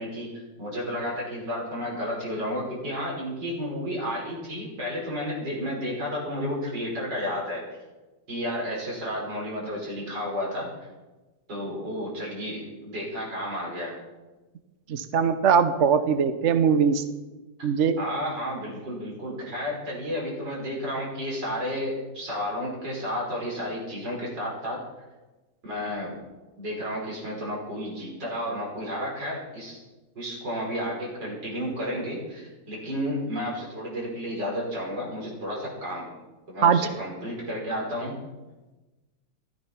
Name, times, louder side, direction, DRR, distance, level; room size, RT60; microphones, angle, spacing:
voice 1, 0.0-7.6 8.3-10.9 11.5-14.0 17.6-17.7 18.0-24.8 25.6-26.2 26.6-29.8 30.1-36.2 36.5-38.2, equal, 75° right, -3 dB, 6.2 m, -32 dB
voice 2, 14.9-17.0 17.6-18.0 36.6-36.8, right 6 dB, 50° right, 10 dB, 1.0 m, -21 dB
15.0 x 13.0 x 5.8 m, 1.1 s
omnidirectional pair, 1.9 m